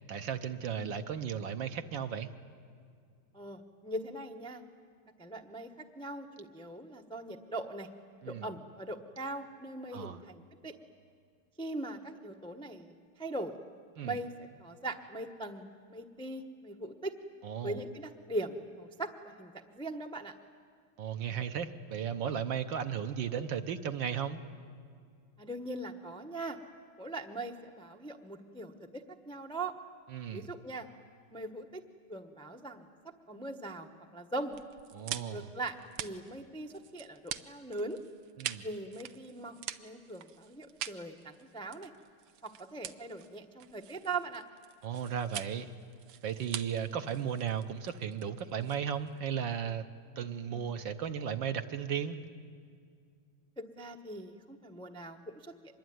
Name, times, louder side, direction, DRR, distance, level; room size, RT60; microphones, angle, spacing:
voice 1, 0.1-2.3 8.2-8.5 9.9-10.2 14.0-14.2 17.4-17.8 21.0-24.4 30.1-30.5 34.9-35.5 38.4-38.7 44.8-45.7 46.2-49.9 50.2-52.2, right 8 dB, 65° right, 8 dB, 1.6 m, -35 dB
voice 2, 3.3-4.6 5.2-7.9 8.2-10.7 11.6-13.6 14.0-14.3 14.6-17.1 17.6-20.3 25.4-26.6 27.0-29.7 30.3-30.9 31.3-31.8 32.1-32.9 33.3-34.6 35.3-38.0 38.6-41.9 42.4-44.4 53.6-55.8, right 2 dB, 5° left, 4 dB, 0.5 m, -41 dB
sound 1, 34.5-49.2, right 10 dB, 85° right, 1.8 m, -44 dB
25.0 x 21.5 x 9.5 m, 2.2 s
omnidirectional pair, 2.4 m